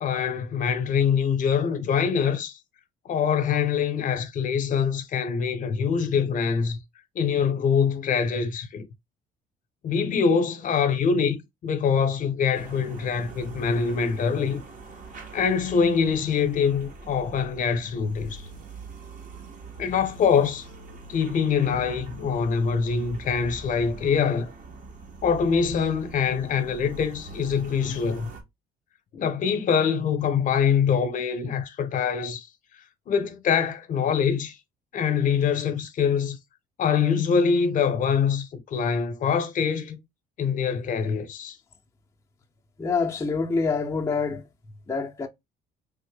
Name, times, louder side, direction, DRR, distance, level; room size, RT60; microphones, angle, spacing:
voice 1, 0.0-2.5 3.1-6.8 7.1-8.9 9.8-11.4 11.6-14.6 15.3-18.4 19.8-20.7 21.1-24.5 25.2-28.3 29.1-32.5 33.1-34.5 34.9-36.4 36.8-40.0 40.4-41.6, left 6 dB, 50° left, 0.8 m, -24 dB
sound 1, 12.5-28.4, right 3 dB, 50° right, 1.0 m, -43 dB
voice 2, 42.8-44.4 44.9-45.3, left 4 dB, 15° left, 0.5 m, -26 dB
3.4 x 2.1 x 3.3 m
cardioid pair, 110°, 17 cm